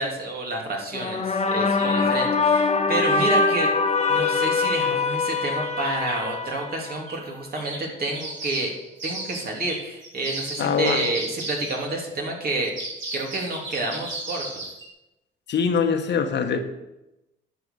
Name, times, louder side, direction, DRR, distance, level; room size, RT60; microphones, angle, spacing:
voice 1, 0.0-3.7 4.1-8.8 9.0-12.7 13.1-14.6, right 2 dB, 50° right, 0 dB, 3.1 m, -29 dB
sound 1, 0.9-7.3, left 4 dB, 35° left, 1.1 m, -23 dB
sound 2, 1.3-1.4 1.8-2.2 3.4-5.0 5.6-6.2 7.1-7.2 7.6-12.0 12.6-14.9, right 2 dB, 70° right, 4.5 m, -36 dB
voice 2, 10.6-11.1 15.5-16.6, left 6 dB, 60° left, 6 dB, 1.4 m, -23 dB
10.5 x 7.0 x 6.9 m, 0.94 s
cardioid pair, 90°, 20 cm